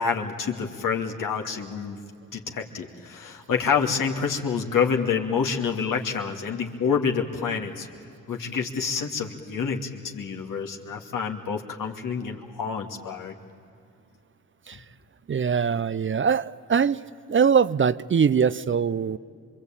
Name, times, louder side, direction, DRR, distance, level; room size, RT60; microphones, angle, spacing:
voice 1, 0.0-2.0 2.3-7.9 8.3-13.3, left 6 dB, 70° left, 2 dB, 2.6 m, -27 dB
voice 2, 15.3-17.0 17.3-19.2, right 6 dB, 35° right, 16 dB, 0.6 m, -22 dB
27.0 x 23.0 x 8.9 m, 2.5 s
supercardioid pair, 55°, 34 cm